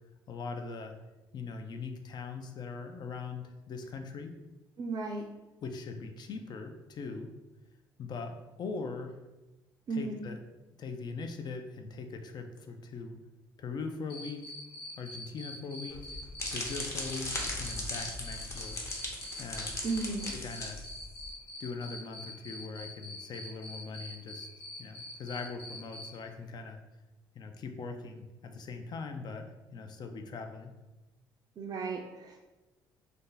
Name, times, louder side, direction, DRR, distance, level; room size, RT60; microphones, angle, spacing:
voice 1, 0.3-0.9 1.3-4.3 5.6-7.3 8.0-9.2 9.9-10.4 10.8-13.2 13.6-14.5 15.0-16.1 16.5-18.8 19.4-19.8 20.3-20.8 21.6-24.5 24.8-26.8 27.3-30.8, left 4 dB, 50° left, 5 dB, 0.4 m, -41 dB
voice 2, 4.8-5.2 9.9-10.2 19.8-20.3 31.6-32.4, right 3 dB, 45° right, -1 dB, 0.4 m, -35 dB
Cricket, 14.1-26.1, left 2 dB, 90° left, 1.1 m, -44 dB
sound 1, 15.9-21.3, left 1 dB, 30° left, 0.8 m, -38 dB
2.6 x 2.2 x 3.8 m, 1.1 s
supercardioid pair, 75°, 9 cm